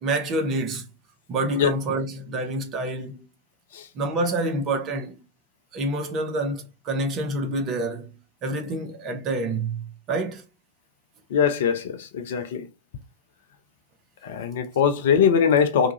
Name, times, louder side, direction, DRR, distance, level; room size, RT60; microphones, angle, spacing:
voice 1, 0.0-0.8 1.3-3.2 3.9-5.2 5.7-8.2 8.4-10.4, right 2 dB, 35° right, 0.8 m, -27 dB
voice 2, 11.3-12.7 14.2-15.9, left 7 dB, 55° left, 0.5 m, -22 dB
2.7 x 2.3 x 2.7 m
figure-of-eight pair, 90°, 0 cm